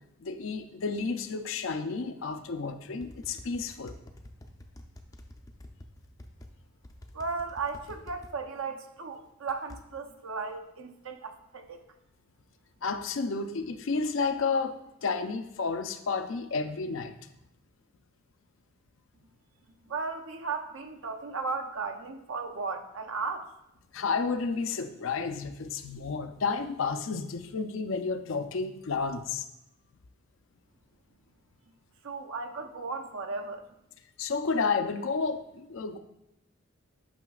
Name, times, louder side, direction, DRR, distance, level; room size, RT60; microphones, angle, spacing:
voice 1, 0.2-4.0 12.8-17.1 23.9-29.5 34.2-36.0, left 4 dB, 70° left, 9 dB, 0.5 m, -31 dB
sound 1, 3.0-6.5 6.8-8.3 9.5-9.8, left 1 dB, 15° left, 0.4 m, -48 dB
voice 2, 7.1-11.8 19.9-23.5 32.0-33.6, right 4 dB, 75° right, 5 dB, 0.6 m, -35 dB
8.8 x 5.9 x 2.4 m, 0.84 s
head